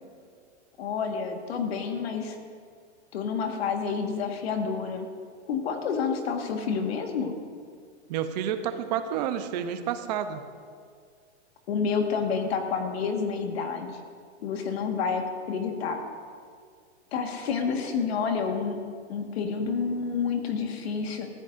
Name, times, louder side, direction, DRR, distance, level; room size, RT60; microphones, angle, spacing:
voice 1, 0.8-2.4 3.1-5.1 5.5-7.4 11.7-13.9 14.4-16.0 17.1-18.8 19.1-21.3, left 5 dB, 60° left, 4 dB, 1.8 m, -29 dB
voice 2, 8.1-10.5, right 9 dB, 35° right, 9 dB, 0.8 m, -30 dB
19.0 x 14.5 x 2.6 m, 2.1 s
supercardioid pair, 160°, 35 cm